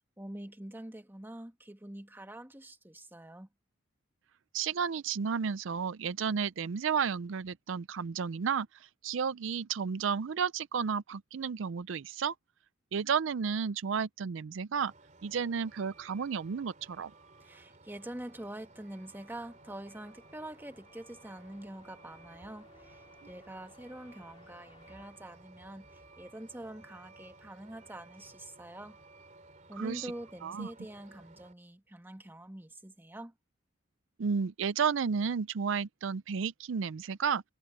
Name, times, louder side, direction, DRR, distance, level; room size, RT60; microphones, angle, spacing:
voice 1, 0.2-3.5 17.4-29.0 29.7-33.3, right 1 dB, 10° right, 1.6 m, -45 dB
voice 2, 4.5-12.3 12.9-14.9 15.2-17.1 29.8-30.1 30.4-30.7 34.2-37.4, right 6 dB, 70° right, 0.4 m, -32 dB
Truck, 14.8-31.5, right 2 dB, 40° right, 3.0 m, -57 dB
sound 1, 18.1-26.2, left 3 dB, 30° left, 2.8 m, -64 dB
head